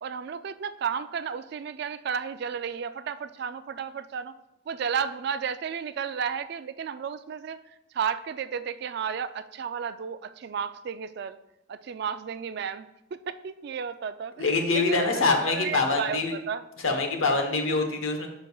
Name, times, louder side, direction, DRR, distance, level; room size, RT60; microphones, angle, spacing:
voice 1, 0.0-4.3 4.7-7.6 7.9-11.4 11.7-16.7, right 7 dB, 55° right, 12 dB, 0.3 m, -33 dB
voice 2, 14.4-16.3 16.8-18.3, left 3 dB, 85° left, 4 dB, 1.0 m, -25 dB
11.5 x 5.1 x 2.3 m, 0.88 s
head